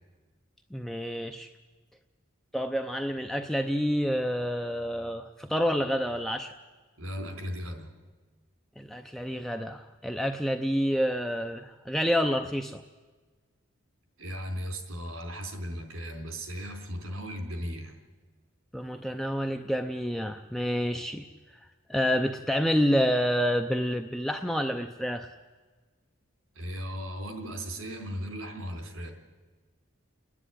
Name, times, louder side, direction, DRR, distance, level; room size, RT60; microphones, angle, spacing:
voice 1, 0.7-1.5 2.5-6.5 8.8-12.8 18.7-21.3 21.9-25.3, equal, ahead, 5 dB, 0.5 m, -28 dB
voice 2, 7.0-7.9 14.2-17.9 26.5-29.1, equal, 80° right, 4 dB, 3.9 m, -36 dB
29.5 x 10.0 x 9.9 m, 1.4 s
head